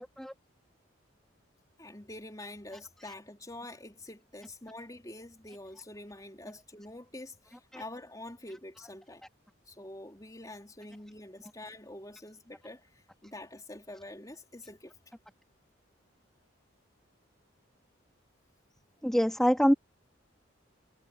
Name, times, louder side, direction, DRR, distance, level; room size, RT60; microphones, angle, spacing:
voice 1, 1.8-9.3 9.7-12.9 13.2-14.9, left 1 dB, 20° left, 4.0 m, -46 dB
voice 2, 19.0-19.7, equal, ahead, 2.4 m, -24 dB
head